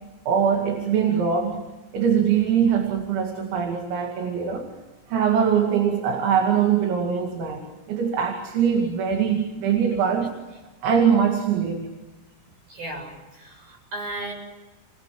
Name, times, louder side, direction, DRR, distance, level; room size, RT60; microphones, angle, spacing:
voice 1, 0.3-1.6 1.9-4.7 5.1-10.3 10.8-11.9, right 7 dB, 70° right, 2 dB, 4.7 m, -22 dB
voice 2, 12.7-14.3, right 1 dB, 45° right, 1 dB, 9.5 m, -35 dB
29.5 x 22.0 x 7.7 m, 1.1 s
omnidirectional pair, 5.7 m